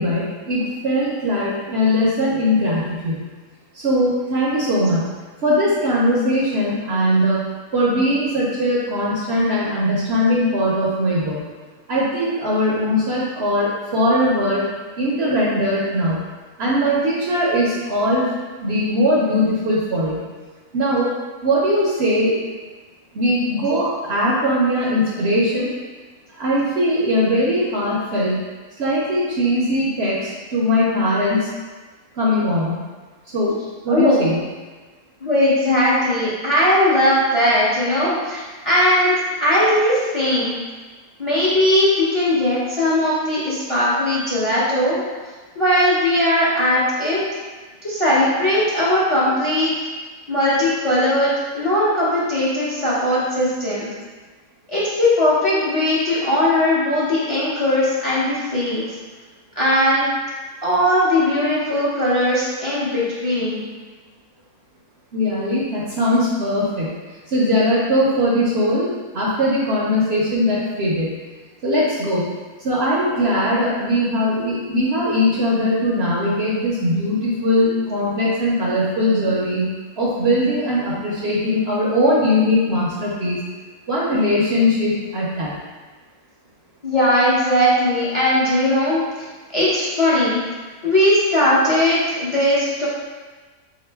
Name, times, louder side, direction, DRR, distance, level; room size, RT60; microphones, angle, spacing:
voice 1, 0.0-3.2 3.7-5.0 5.4-7.4 7.7-11.4 11.9-14.6 15.0-16.2 16.6-18.3 18.6-20.2 20.7-21.1 21.4-22.4 23.1-25.7 26.3-28.4 28.8-31.5 32.1-32.8 33.3-33.6 33.8-34.4 65.1-66.9 67.3-71.1 71.6-72.3 72.6-79.7 80.0-83.4 83.9-85.6, equal, 60° right, -6 dB, 0.7 m, -20 dB
voice 2, 33.9-34.2 35.2-40.6 41.2-45.0 45.6-47.2 47.8-49.7 50.3-53.9 54.7-58.8 59.6-60.1 60.6-63.7 86.8-89.0 89.5-90.4 90.8-92.9, left 1 dB, 30° left, -8 dB, 0.6 m, -19 dB
3.7 x 2.9 x 3.3 m, 1.3 s
omnidirectional pair, 1.5 m